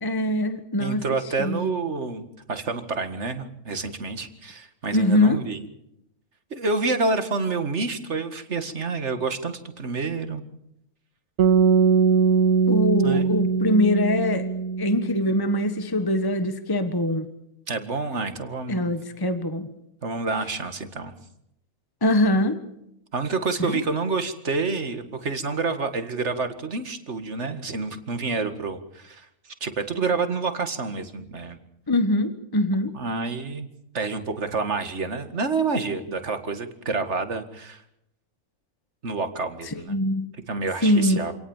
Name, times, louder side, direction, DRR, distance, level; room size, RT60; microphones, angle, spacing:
voice 1, 0.0-1.0 1.4-1.7 4.9-5.4 12.7-14.5 14.8-17.3 18.7-19.7 22.0-22.6 23.7-23.8 31.9-32.9 39.9-40.3 40.8-41.2, left 1 dB, 15° left, 9 dB, 1.5 m, -22 dB
voice 2, 0.8-2.2 2.5-5.6 6.5-10.4 13.0-13.3 17.7-18.9 20.0-21.1 23.1-31.6 32.9-33.7 33.9-37.8 39.0-40.0 40.5-41.3, right 4 dB, 50° right, 9 dB, 2.2 m, -28 dB
sound 1, 11.4-15.6, right 6 dB, 85° right, 1.8 m, -21 dB
27.0 x 18.5 x 7.3 m, 0.80 s
omnidirectional pair, 1.5 m